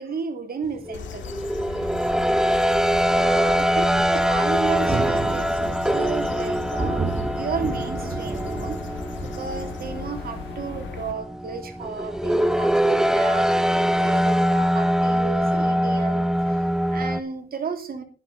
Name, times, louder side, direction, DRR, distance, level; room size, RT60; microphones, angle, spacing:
voice 1, 0.0-1.4 2.9-8.8 9.2-18.0, right 5 dB, 50° right, 7 dB, 3.0 m, -34 dB
sound 1, 0.8-17.2, equal, 5° right, 0.7 m, -23 dB
sound 2, 0.9-11.1, left 7 dB, 70° left, 2.0 m, -38 dB
Thunder, 4.7-10.5, right 3 dB, 30° right, 2.2 m, -32 dB
11.0 x 11.0 x 5.4 m, 0.36 s
cardioid pair, 90°, 20 cm